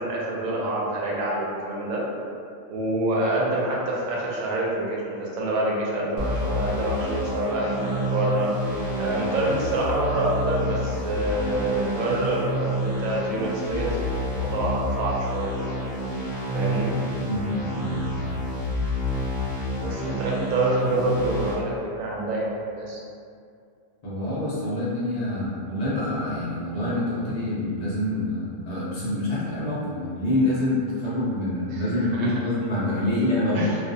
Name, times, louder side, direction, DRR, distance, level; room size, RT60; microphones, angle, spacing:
voice 1, 0.0-2.0 2.7-8.5 9.0-14.0 14.3-15.8 16.5-16.9 19.8-23.0 31.7-32.3 33.5-33.8, right 2 dB, 85° right, -4 dB, 1.0 m, -27 dB
sound 1, 6.2-21.5, equal, 15° left, 0.8 m, -29 dB
voice 2, 17.2-18.3 24.0-33.6, left 1 dB, 60° left, -8 dB, 0.4 m, -26 dB
2.4 x 2.4 x 2.5 m, 2.4 s
omnidirectional pair, 1.4 m